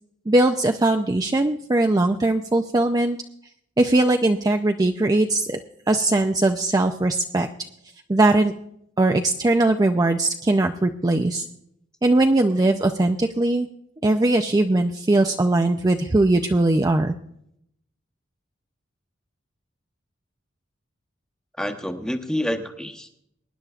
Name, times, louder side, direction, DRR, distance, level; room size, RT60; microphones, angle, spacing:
voice 1, 0.3-3.2 3.8-5.6 5.9-7.5 8.1-8.5 9.0-11.5 12.0-13.7 14.0-17.1, right 2 dB, 20° right, 5 dB, 0.4 m, -20 dB
voice 2, 21.6-23.2, equal, 5° left, 6 dB, 1.0 m, -28 dB
23.5 x 10.0 x 2.4 m, 0.74 s
head